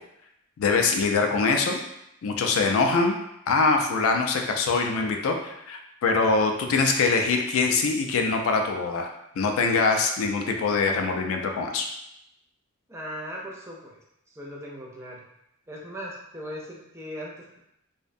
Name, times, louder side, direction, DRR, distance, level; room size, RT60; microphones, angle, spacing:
voice 1, 0.6-1.8 2.2-3.1 3.5-9.1 9.4-11.9, left 4 dB, 70° left, 3 dB, 0.3 m, -23 dB
voice 2, 12.9-14.0 14.3-15.2 15.7-17.6, equal, 15° right, -2 dB, 0.4 m, -38 dB
2.5 x 2.1 x 2.5 m, 0.80 s
head